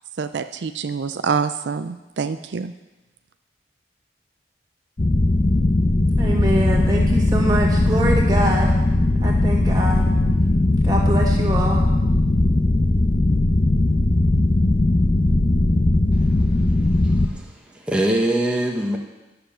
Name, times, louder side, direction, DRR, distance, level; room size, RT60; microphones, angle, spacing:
voice 1, 0.2-2.7, right 5 dB, 80° right, 10 dB, 0.5 m, -26 dB
sound 1, 5.0-17.3, left 2 dB, 40° left, 0.7 m, -18 dB
voice 2, 6.2-8.7 9.2-10.1 10.8-11.8, right 1 dB, 20° right, -2 dB, 2.0 m, -24 dB
voice 3, 16.8-17.5 17.9-19.0, right 1 dB, 5° right, -1 dB, 1.2 m, -23 dB
10.5 x 6.9 x 7.4 m, 1.1 s
head